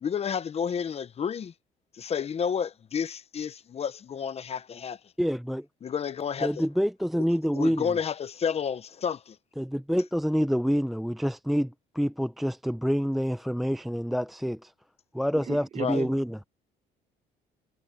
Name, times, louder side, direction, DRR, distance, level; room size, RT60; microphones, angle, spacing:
voice 1, 0.0-1.5 1.9-5.0 5.8-6.6 7.5-9.4 15.8-16.0, left 7 dB, 40° left, 0.9 m, -30 dB
voice 2, 5.2-5.7 6.4-8.0 9.6-14.7 15.1-16.4, equal, ahead, 0.5 m, -27 dB
voice 3, 15.3-16.1, right 7 dB, 40° right, 2.0 m, -35 dB
cardioid pair, 110°, 17 cm